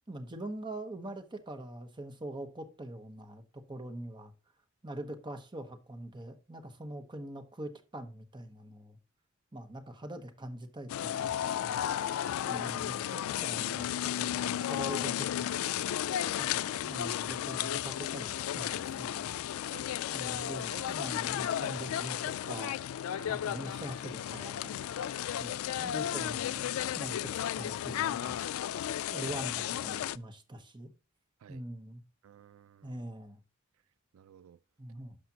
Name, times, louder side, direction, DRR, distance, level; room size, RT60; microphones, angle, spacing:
voice 1, 0.1-4.3 4.8-9.0 9.5-11.8 12.4-15.7 16.4-19.4 20.0-22.8 23.3-24.8 25.4-28.4 29.1-30.9 31.5-32.0 32.8-33.4 34.8-35.2, right 1 dB, 20° right, 1.0 m, -43 dB
sound 1, 10.9-30.2, left 11 dB, 85° left, 0.3 m, -34 dB
voice 2, 20.4-20.9 23.2-23.4 31.4-31.6 32.2-33.0 34.1-34.6, right 9 dB, 85° right, 0.4 m, -54 dB
12.0 x 5.1 x 2.8 m
head